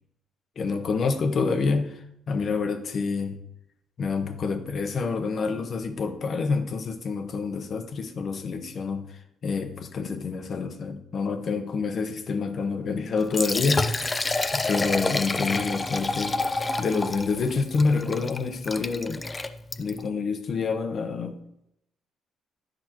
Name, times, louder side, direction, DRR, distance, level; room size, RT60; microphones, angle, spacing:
voice 1, 0.6-3.4 4.0-9.0 9.4-16.4 16.8-19.2 19.8-21.4, left 4 dB, 45° left, 8 dB, 0.8 m, -27 dB
Liquid, 13.2-20.1, left 3 dB, 20° left, 0.4 m, -29 dB
10.0 x 6.0 x 3.0 m, 0.79 s
cardioid pair, 125°, 0 cm